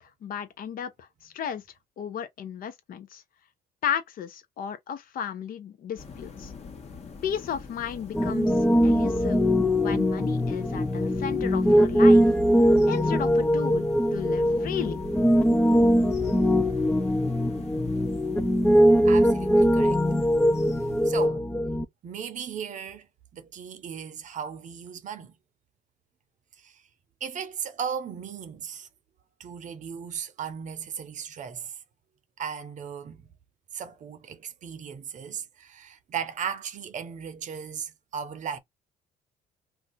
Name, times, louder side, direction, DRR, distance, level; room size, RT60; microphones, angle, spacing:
voice 1, 0.0-1.6 2.0-3.2 3.8-6.5 7.2-9.4 9.7-12.2 12.9-15.0, left 8 dB, 55° left, 0.8 m, -34 dB
sound 1, 6.0-21.3, left 4 dB, 40° left, 1.2 m, -43 dB
Piano, 8.1-21.8, equal, 5° left, 0.4 m, -21 dB
voice 2, 19.0-20.0 21.0-21.4 22.0-23.1 23.3-25.3 26.6-26.8 27.2-28.9 29.4-31.8 32.4-33.3 33.7-38.6, right 7 dB, 45° right, 0.7 m, -36 dB
2.7 x 2.2 x 3.9 m
cardioid pair, 110°, 17 cm